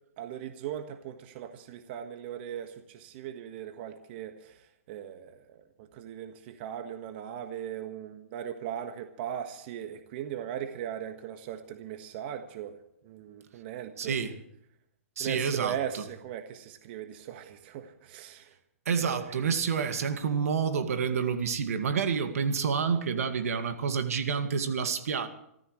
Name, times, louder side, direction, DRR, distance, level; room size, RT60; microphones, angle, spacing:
voice 1, 0.2-12.7 13.0-14.2 15.2-18.5 19.0-19.2, right 9 dB, 45° right, 1.6 m, -39 dB
voice 2, 14.0-14.4 15.2-16.1 18.9-25.3, right 6 dB, 70° right, 2.2 m, -29 dB
27.0 x 15.0 x 3.3 m
hypercardioid pair, 145°, 8 cm